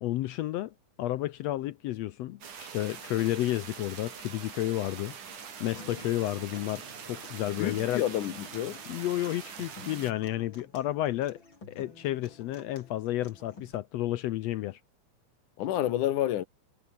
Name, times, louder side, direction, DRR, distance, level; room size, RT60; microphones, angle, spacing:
voice 1, 0.0-6.8 7.1-8.0 8.9-11.4 11.7-14.8, left 15 dB, 75° left, 1.6 m, -31 dB
sound 1, 2.4-10.1, right 7 dB, 85° right, 4.6 m, -44 dB
Human voice / Acoustic guitar, 5.8-13.7, left 3 dB, 35° left, 6.8 m, -51 dB
voice 2, 7.6-8.8 15.6-16.4, left 12 dB, 90° left, 2.9 m, -29 dB
omnidirectional pair, 3.5 m